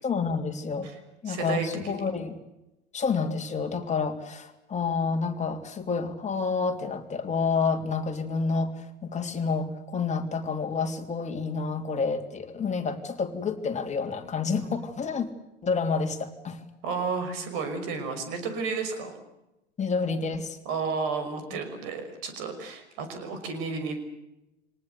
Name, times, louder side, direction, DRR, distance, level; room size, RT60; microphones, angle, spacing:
voice 1, 0.0-0.9 1.2-2.3 2.9-15.3 15.6-16.6 19.8-20.6, left 5 dB, 20° left, 4 dB, 3.1 m, -29 dB
voice 2, 1.3-2.1 16.8-19.1 20.7-24.0, right 4 dB, 55° right, 8 dB, 5.7 m, -32 dB
26.0 x 19.0 x 8.2 m, 0.92 s
hypercardioid pair, 90°, 34 cm